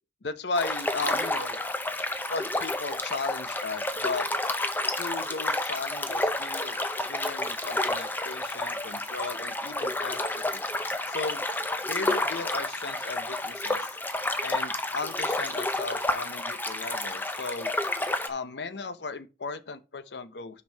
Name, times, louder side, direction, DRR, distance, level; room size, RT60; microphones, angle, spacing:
voice 1, 0.2-1.6 2.3-4.2 5.0-10.6 11.1-11.5 11.9-13.9 14.4-17.7 18.3-20.6, left 3 dB, 80° left, 0.7 m, -36 dB
sound 1, 0.6-18.3, left 2 dB, 10° left, 0.6 m, -30 dB
6.2 x 5.3 x 5.4 m
head